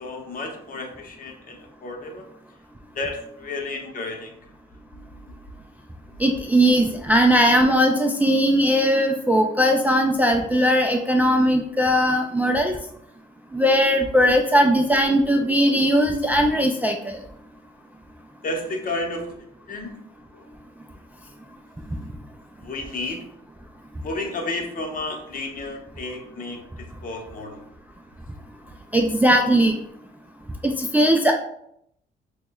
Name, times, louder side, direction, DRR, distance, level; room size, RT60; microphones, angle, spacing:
voice 1, 0.0-2.3 2.9-4.4 4.9-5.4 6.1-6.2 18.4-19.3 19.7-19.9 20.3-20.5 22.6-23.2 24.0-27.6, left 2 dB, 45° left, 2 dB, 0.9 m, -32 dB
voice 2, 6.2-12.7 13.5-17.2 28.9-29.8 30.6-31.3, equal, 10° right, 2 dB, 0.3 m, -19 dB
6.0 x 2.2 x 2.2 m, 0.73 s
cardioid pair, 90°, 20 cm